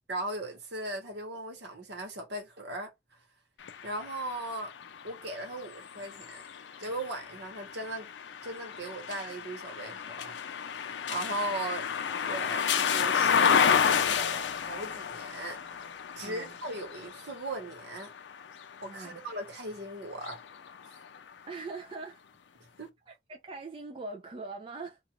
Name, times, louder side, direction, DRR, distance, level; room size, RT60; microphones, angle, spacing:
voice 1, 0.1-2.9 3.8-4.7 5.0-6.4 6.8-8.1 8.4-10.4 11.1-11.9 12.2-15.6 16.1-18.1 18.8-20.4 22.8-22.9, right 1 dB, 70° right, 1.1 m, -38 dB
sound 1, 3.6-19.5 20.1-21.3, left 7 dB, 75° left, 0.4 m, -31 dB
voice 2, 18.9-19.2 21.5-22.2 23.1-25.0, right 3 dB, 30° right, 0.4 m, -42 dB
2.4 x 2.3 x 2.9 m
head